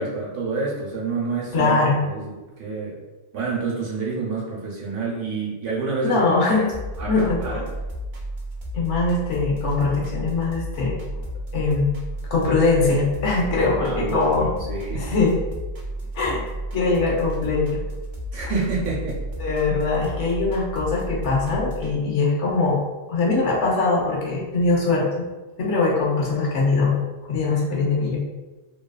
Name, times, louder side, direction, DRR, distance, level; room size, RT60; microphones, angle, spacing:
voice 1, 0.0-3.0 3.3-6.2 7.0-7.6 13.8-15.1 18.3-19.1, right 4 dB, 75° right, -5 dB, 1.2 m, -28 dB
voice 2, 1.5-2.0 6.0-6.7 7.1-7.6 8.7-11.2 11.5-11.9 12.3-14.5 15.0-15.4 16.1-16.4 16.7-17.8 19.4-22.8 23.1-25.3 25.6-26.9 27.3-28.2, left 3 dB, 70° left, -3 dB, 1.0 m, -22 dB
sound 1, 6.7-21.9, equal, 60° right, 0.5 m, -32 dB
3.0 x 2.3 x 2.3 m, 1.2 s
omnidirectional pair, 1.3 m